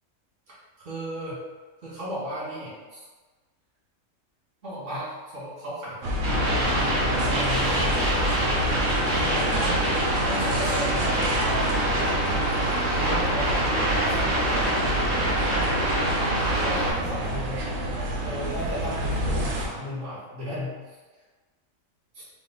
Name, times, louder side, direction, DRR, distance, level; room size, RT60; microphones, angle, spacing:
voice 1, 0.8-1.4 1.8-3.0 4.6-8.1 8.9-11.4 12.7-13.7 14.0-14.2 16.4-17.8 18.2-21.0 22.1-22.2, equal, 60° right, -8 dB, 1.9 m, -35 dB
sound 1, 6.0-19.7, right 1 dB, 80° right, 1.1 m, -29 dB
sound 2, 6.2-16.9, equal, 40° right, 1.2 m, -25 dB
3.6 x 3.0 x 3.9 m, 1.3 s
omnidirectional pair, 1.4 m